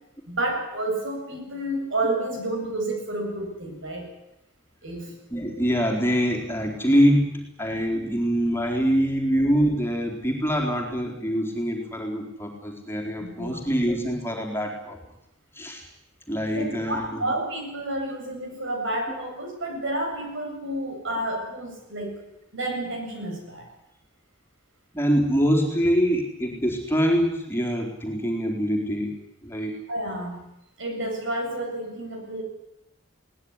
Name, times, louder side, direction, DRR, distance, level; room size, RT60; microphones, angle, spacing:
voice 1, 0.3-4.1 4.8-5.1 13.2-13.6 16.5-22.2 22.5-23.7 29.9-30.5 30.8-32.4, right 1 dB, 65° right, 3 dB, 7.8 m, -30 dB
voice 2, 5.3-15.0 15.5-15.9 16.3-17.2 19.1-19.2 24.9-29.2 29.4-29.7, equal, 10° left, 0 dB, 4.0 m, -24 dB
21.5 x 18.5 x 9.8 m, 0.84 s
head